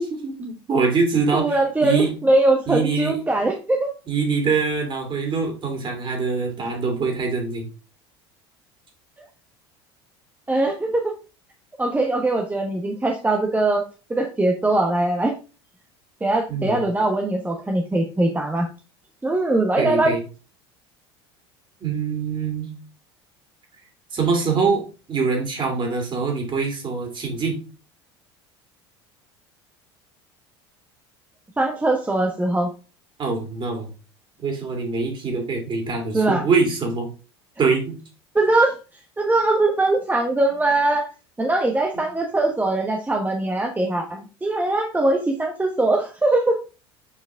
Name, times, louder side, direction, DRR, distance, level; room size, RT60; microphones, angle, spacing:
voice 1, 0.0-2.1 2.7-3.2 4.1-7.7 16.5-16.8 19.8-20.2 21.8-22.7 24.1-24.8 25.1-27.6 33.2-33.9 34.4-37.1 37.6-38.0 41.9-42.0, right 4 dB, 35° right, 2 dB, 2.9 m, -24 dB
voice 2, 1.3-3.9 10.5-11.1 11.8-15.3 16.2-18.7 19.2-20.2 31.6-32.7 36.1-36.5 38.3-38.7 39.2-41.1 41.4-46.6, right 2 dB, 10° right, 1 dB, 1.1 m, -21 dB
7.0 x 4.5 x 3.5 m, 0.33 s
hypercardioid pair, 80°, 14 cm